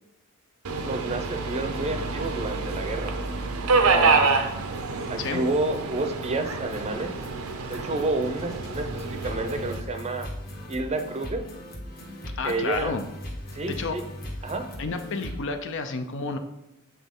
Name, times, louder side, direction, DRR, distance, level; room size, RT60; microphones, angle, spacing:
Subway metro underground, 0.6-9.8, right 4 dB, 80° right, 0.7 m, -27 dB
sound 1, 0.8-0.9 1.2-1.3 1.7-1.8 2.2-2.3 2.7-2.8 3.2-3.3 3.7-15.4, equal, 45° left, 1.2 m, -40 dB
voice 1, 0.8-3.1 3.9-4.3 5.1-7.1 7.7-10.3 10.7-11.4 12.4-13.0 13.5-14.0 14.4-14.7, right 2 dB, 30° right, 6 dB, 0.6 m, -30 dB
voice 2, 5.2-5.5 12.4-13.0 13.7-14.0 14.8-16.4, left 4 dB, 60° left, 7 dB, 0.6 m, -30 dB
7.4 x 4.0 x 3.7 m, 0.90 s
head